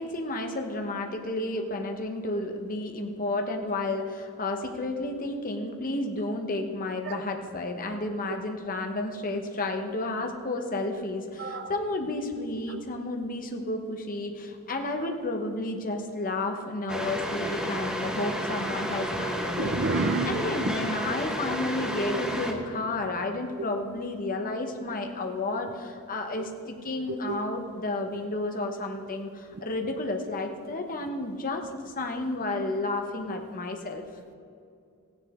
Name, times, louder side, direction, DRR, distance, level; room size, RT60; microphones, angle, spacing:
voice 1, 0.0-19.8 20.2-34.0, left 2 dB, 40° left, 3 dB, 1.1 m, -31 dB
sound 1, 16.9-22.5, equal, 5° right, 1.0 m, -31 dB
voice 2, 19.6-20.7 27.3-27.4, right 3 dB, 50° right, 10 dB, 0.6 m, -29 dB
16.0 x 10.0 x 3.7 m, 2.4 s
head